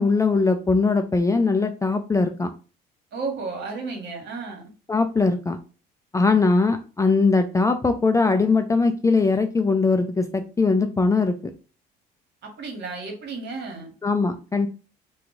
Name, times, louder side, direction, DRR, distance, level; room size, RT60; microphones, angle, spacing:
voice 1, 0.0-2.5 4.9-5.6 6.1-11.3 14.0-14.7, left 3 dB, 15° left, 6 dB, 0.4 m, -21 dB
voice 2, 3.1-4.7 12.4-13.9, right 4 dB, 55° right, 2 dB, 1.4 m, -33 dB
2.9 x 2.3 x 3.8 m, 0.34 s
hypercardioid pair, 70°, 21 cm